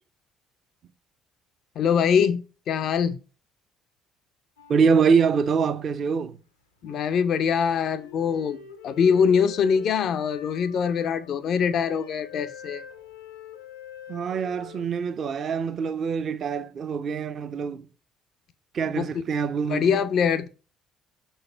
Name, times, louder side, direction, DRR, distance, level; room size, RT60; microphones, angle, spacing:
voice 1, 1.8-3.2 6.8-8.6 8.8-12.8 19.0-19.1 19.7-20.5, left 7 dB, 50° left, 0.5 m, -23 dB
sound 1, 4.6-6.2 6.8-14.9, left 8 dB, 80° left, 0.8 m, -46 dB
voice 2, 4.7-6.4 14.1-17.9 18.7-20.0, right 6 dB, 45° right, 0.6 m, -24 dB
6.4 x 4.5 x 5.5 m
figure-of-eight pair, 50°, 0 cm